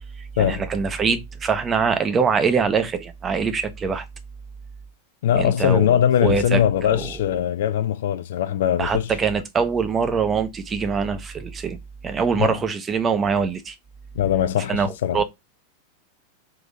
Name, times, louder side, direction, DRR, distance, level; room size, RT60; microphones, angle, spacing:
voice 1, 0.2-4.0 5.3-6.6 6.9-7.1 8.8-11.8 12.0-13.7 14.7-15.2, right 5 dB, 20° right, 0.8 m, -23 dB
voice 2, 5.2-9.1 12.4-12.6 14.1-15.2, left 10 dB, 55° left, 0.4 m, -21 dB
3.8 x 2.9 x 3.8 m
figure-of-eight pair, 90°, 0 cm